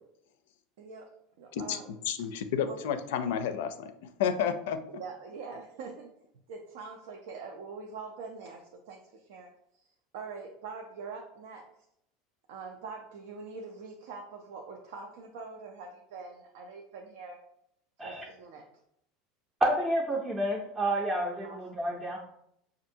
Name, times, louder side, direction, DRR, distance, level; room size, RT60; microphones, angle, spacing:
voice 1, 1.4-1.9 2.2-2.3 2.6-2.8 4.9-6.1 6.5-9.8 10.1-11.6 12.5-17.4 18.0-18.6 21.4-21.8, right 4 dB, 75° right, 1 dB, 0.5 m, -44 dB
voice 2, 2.1-3.9 4.2-4.8, left 8 dB, 85° left, 10 dB, 0.4 m, -30 dB
voice 3, 19.6-22.2, right 1 dB, 10° right, -2 dB, 0.5 m, -29 dB
5.2 x 2.5 x 2.7 m, 0.74 s
supercardioid pair, 150°, 0 cm